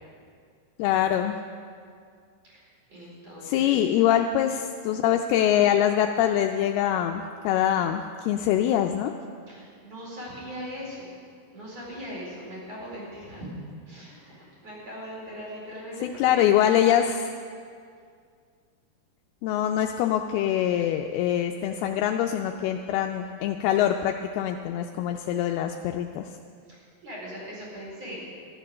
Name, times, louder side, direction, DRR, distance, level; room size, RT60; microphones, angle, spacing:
voice 1, 0.8-1.4 3.4-9.1 16.0-17.3 19.4-26.3, left 10 dB, 85° left, 4 dB, 2.5 m, -24 dB
voice 2, 2.5-3.9 9.5-13.5 13.9-16.5 26.7-28.2, equal, 40° right, -6 dB, 5.6 m, -40 dB
13.5 x 11.5 x 6.6 m, 2.2 s
omnidirectional pair, 4.6 m